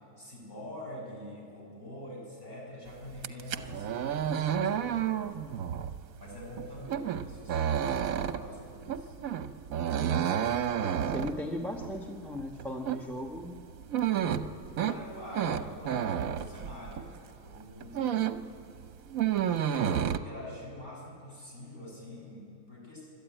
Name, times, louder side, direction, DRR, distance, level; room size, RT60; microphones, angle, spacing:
voice 1, 0.2-5.3 6.2-9.2 14.7-18.7 19.7-23.1, left 1 dB, 30° left, -3 dB, 6.1 m, -45 dB
sound 1, 3.1-17.2 17.5-18.5 18.8-20.2, right 9 dB, 65° right, 1.1 m, -31 dB
voice 2, 11.0-13.5, left 1 dB, ahead, 1 dB, 0.9 m, -37 dB
29.0 x 12.5 x 9.0 m, 2.6 s
omnidirectional pair, 1.6 m